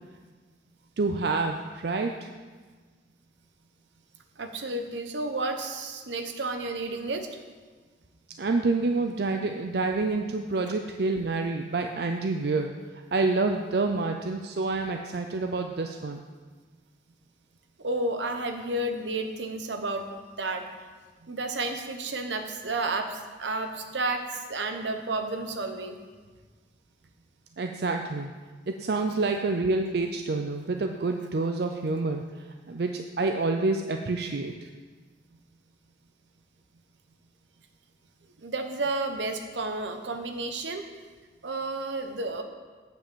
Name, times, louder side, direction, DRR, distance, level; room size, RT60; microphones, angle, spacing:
voice 1, 1.0-2.1 8.4-12.7 13.1-16.2 27.6-28.3 28.7-32.2 32.7-34.7, right 3 dB, 60° right, 4 dB, 0.5 m, -28 dB
voice 2, 4.4-7.3 17.8-20.1 20.4-20.6 21.3-26.0 38.4-40.8 41.4-42.4, right 2 dB, 80° right, 6 dB, 1.0 m, -31 dB
9.0 x 5.7 x 6.9 m, 1.4 s
head